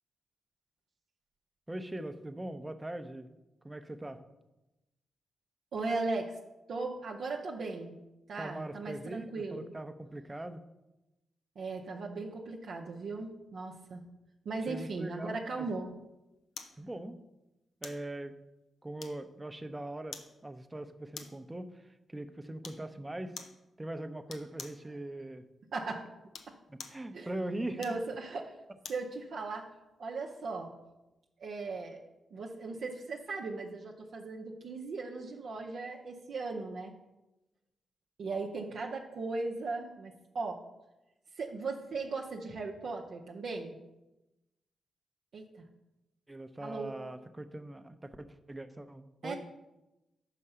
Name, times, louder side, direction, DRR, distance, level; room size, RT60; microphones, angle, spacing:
voice 1, 1.7-3.4 3.6-4.2 8.4-10.6 14.7-15.7 16.8-17.2 17.8-18.3 18.8-23.4 23.8-25.4 26.7-28.0 46.3-49.3, right 1 dB, 20° right, 9 dB, 0.7 m, -41 dB
voice 2, 5.7-6.4 6.7-8.0 8.3-9.7 11.6-14.0 14.4-15.9 25.7-26.1 26.5-26.6 27.1-27.3 27.8-28.6 28.9-29.7 30.0-30.7 31.4-32.0 32.3-36.9 38.2-40.6 41.4-43.7 45.3-45.6 46.6-47.0 49.2-49.3, right 3 dB, 70° right, -1 dB, 0.6 m, -37 dB
sound 1, 16.6-16.8 17.8-18.1 19.0-19.4 20.1-20.4 21.1-21.5 22.6-22.9 23.4-23.6 24.3-24.8 26.2-27.0 27.8-29.1 29.5-29.7, left 6 dB, 75° left, 0.6 m, -47 dB
5.4 x 4.9 x 5.6 m, 0.97 s
supercardioid pair, 45°, 0 cm